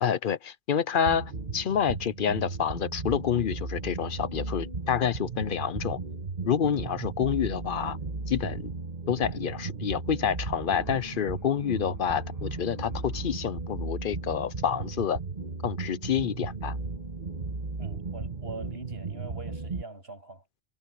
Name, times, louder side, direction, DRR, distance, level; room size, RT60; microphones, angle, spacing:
voice 1, 0.0-6.0 6.5-8.0 8.3-8.7 9.1-15.2 15.6-16.8, left 8 dB, 60° left, 0.8 m, -28 dB
sound 1, 1.1-19.8, right 4 dB, 45° right, 1.6 m, -35 dB
sound 2, 10.6-14.1, left 1 dB, 15° left, 2.2 m, -53 dB
voice 2, 17.8-20.4, right 2 dB, 75° right, 8.0 m, -43 dB
omnidirectional pair, 1.0 m